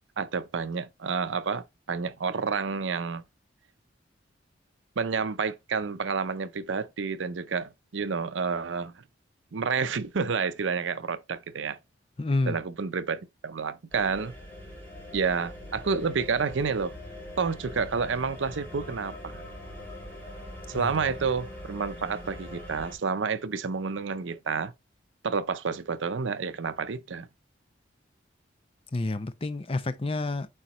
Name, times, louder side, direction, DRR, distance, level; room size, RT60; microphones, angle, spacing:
voice 1, 0.2-3.2 5.0-9.0 9.5-11.8 12.5-14.3 15.1-16.9 17.4-19.4 20.7-24.7 25.2-27.3, right 5 dB, 80° right, 0.6 m, -29 dB
voice 2, 12.2-12.6 20.7-20.9 28.9-30.5, left 2 dB, 30° left, 0.5 m, -29 dB
sound 1, 13.9-22.9, left 1 dB, 10° left, 3.0 m, -42 dB
8.9 x 4.0 x 3.0 m
head